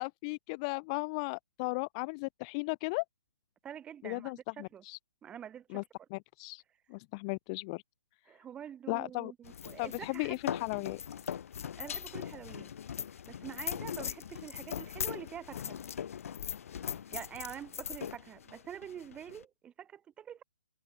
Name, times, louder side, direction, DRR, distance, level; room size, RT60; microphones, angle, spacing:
voice 1, 0.0-3.0 4.0-5.0 5.7-5.8 6.1-6.6 6.9-7.8 8.9-9.3 9.8-11.0, left 30 dB, 25° left, 0.4 m, -36 dB
voice 2, 3.6-4.8 5.2-5.8 8.3-10.4 11.8-12.7 13.3-15.8 16.9-20.4, right 9 dB, 10° right, 1.1 m, -46 dB
sound 1, 9.4-19.4, left 8 dB, 60° left, 0.7 m, -40 dB
hypercardioid pair, 150°, 9 cm